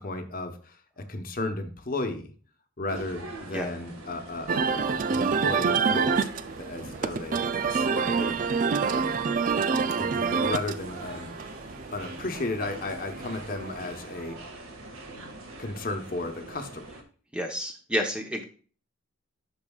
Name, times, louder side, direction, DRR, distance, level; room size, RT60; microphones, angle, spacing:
voice 1, 0.0-2.3 2.8-8.4 8.8-9.2 10.0-11.3 11.9-14.4 15.6-16.8, left 2 dB, 40° left, 5 dB, 1.0 m, -34 dB
sound 1, 2.9-17.0, right 2 dB, 90° right, 1.8 m, -43 dB
sound 2, 4.5-13.9, right 5 dB, 40° right, 0.4 m, -27 dB
voice 2, 17.3-18.5, equal, 5° right, 3 dB, 0.9 m, -30 dB
11.0 x 6.6 x 2.4 m, 0.41 s
head